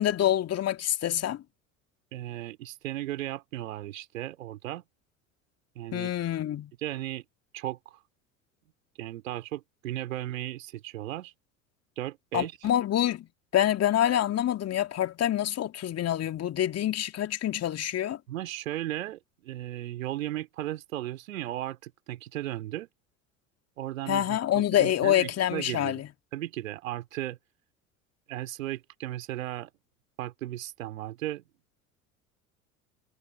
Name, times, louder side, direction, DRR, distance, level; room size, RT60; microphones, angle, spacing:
voice 1, 0.0-1.4 5.9-6.7 12.3-13.3 13.5-18.2 24.1-26.1, left 11 dB, 35° left, 2.7 m, -26 dB
voice 2, 2.1-4.8 5.8-6.1 6.8-7.2 7.5-8.0 9.0-11.3 12.0-12.5 18.3-22.9 23.8-26.0 26.3-27.4 28.3-29.7 30.2-31.4, right 14 dB, 70° right, 3.7 m, -36 dB
figure-of-eight pair, 70°, 42 cm